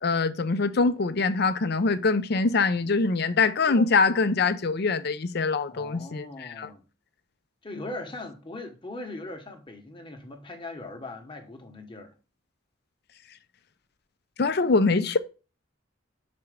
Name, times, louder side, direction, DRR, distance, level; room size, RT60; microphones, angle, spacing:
voice 1, 0.0-6.7 14.4-15.2, left 4 dB, 55° left, 0.6 m, -24 dB
voice 2, 5.7-6.8 7.6-12.1, left 2 dB, 25° left, 1.0 m, -40 dB
5.8 x 4.3 x 5.0 m
head